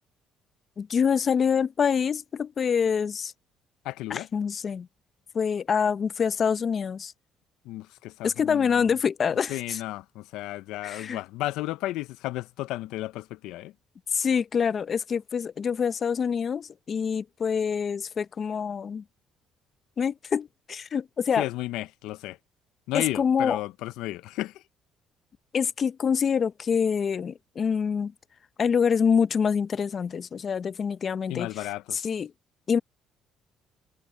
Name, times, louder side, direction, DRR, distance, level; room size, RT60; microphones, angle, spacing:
voice 1, 0.8-3.3 4.1-4.9 5.3-7.1 8.2-9.8 10.8-11.2 14.1-19.0 20.0-21.4 22.9-23.6 25.5-28.1 28.6-31.5 32.0-32.3 32.7-32.8, left 6 dB, 40° left, 0.6 m, -26 dB
voice 2, 3.8-4.3 7.6-9.0 9.5-13.7 21.4-22.4 22.9-24.6 31.3-32.1, left 17 dB, 85° left, 0.5 m, -33 dB
cardioid pair, 100°, 0 cm